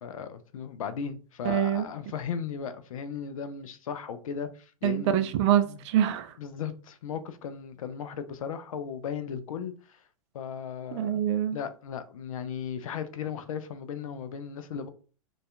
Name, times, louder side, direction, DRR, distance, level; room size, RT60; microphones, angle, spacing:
voice 1, 0.0-5.3 5.6-5.8 6.4-10.0 10.3-11.2 11.5-14.9, left 7 dB, 80° left, 0.4 m, -36 dB
voice 2, 1.5-1.9 4.8-6.3 10.9-11.6, right 10 dB, 55° right, 0.4 m, -25 dB
2.6 x 2.3 x 2.3 m
hypercardioid pair, 110°, 17 cm